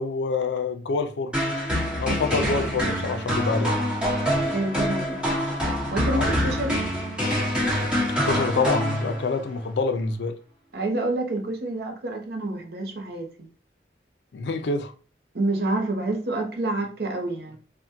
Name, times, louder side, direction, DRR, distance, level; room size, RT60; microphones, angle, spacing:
voice 1, 0.0-1.3 2.0-3.8 6.1-6.4 8.2-10.3 14.3-14.9, left 3 dB, 80° left, 0.4 m, -26 dB
sound 1, 1.3-9.5, equal, 5° right, 1.0 m, -26 dB
voice 2, 4.5-5.3 5.9-6.9 10.7-13.5 15.3-17.6, right 2 dB, 60° right, 0.6 m, -28 dB
3.4 x 2.1 x 2.7 m
head